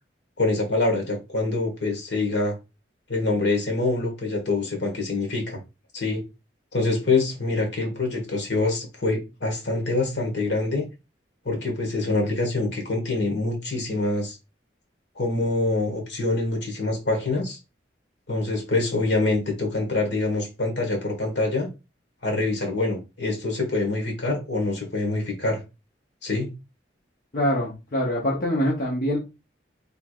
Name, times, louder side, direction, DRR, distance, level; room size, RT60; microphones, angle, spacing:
voice 1, 0.4-2.5 3.1-5.6 5.9-6.2 6.7-10.9 11.4-14.4 15.1-17.6 18.3-21.7 22.2-25.6 26.2-26.5, left 2 dB, 70° left, 1.6 m, -25 dB
voice 2, 27.3-29.2, equal, 50° left, 0.9 m, -24 dB
4.5 x 3.5 x 2.4 m
head